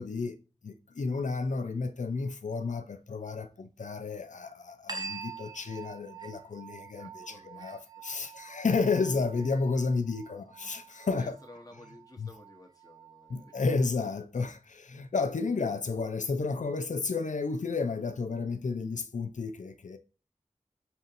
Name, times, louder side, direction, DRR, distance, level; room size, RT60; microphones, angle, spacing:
voice 1, 0.0-11.4 12.2-12.3 13.3-20.0, left 4 dB, 80° left, 0.5 m, -32 dB
sound 1, 4.9-13.9, right 5 dB, 35° right, 0.8 m, -46 dB
voice 2, 7.0-7.8 8.2-8.3 11.2-13.6, left 1 dB, 30° left, 1.2 m, -54 dB
5.5 x 2.6 x 2.6 m
wide cardioid pair, 45°, 13 cm